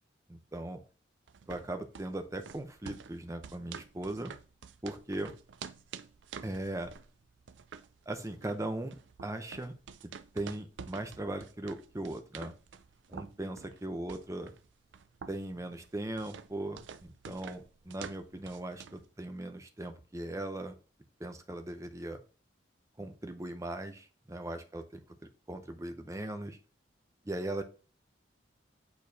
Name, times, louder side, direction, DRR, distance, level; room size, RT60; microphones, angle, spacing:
voice 1, 0.3-0.8 1.5-4.3 4.8-5.3 6.4-6.9 8.1-9.7 10.3-12.6 13.1-14.5 15.3-20.7 21.2-22.2 23.0-25.0 25.5-26.6 27.2-27.6, right 1 dB, 15° right, 7 dB, 0.6 m, -39 dB
sound 1, 1.3-19.1, right 6 dB, 70° right, 0.4 m, -49 dB
8.4 x 4.6 x 2.7 m, 0.38 s
head